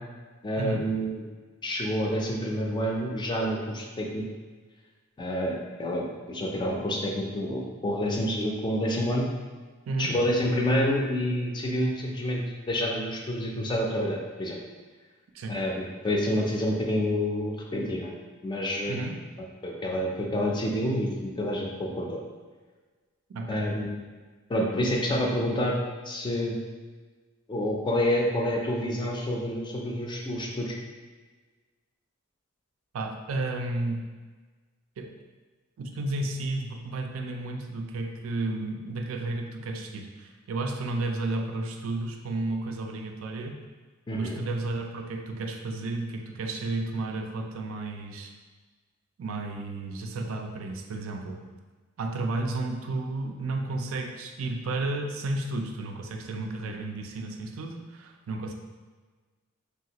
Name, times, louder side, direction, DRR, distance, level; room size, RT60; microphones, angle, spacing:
voice 1, 0.4-1.2 1.6-4.2 5.2-9.3 10.0-14.6 15.5-18.1 18.4-19.0 19.6-22.2 23.5-24.0 24.5-25.8 26.1-26.6 27.5-30.7 44.1-44.4, equal, 20° left, -1 dB, 0.4 m, -28 dB
voice 2, 23.3-23.7 32.9-34.0 35.0-35.1 35.8-43.6 44.1-48.3 49.2-51.4 52.0-58.5, right 2 dB, 85° right, 3 dB, 0.4 m, -32 dB
3.3 x 2.3 x 2.8 m, 1.4 s
head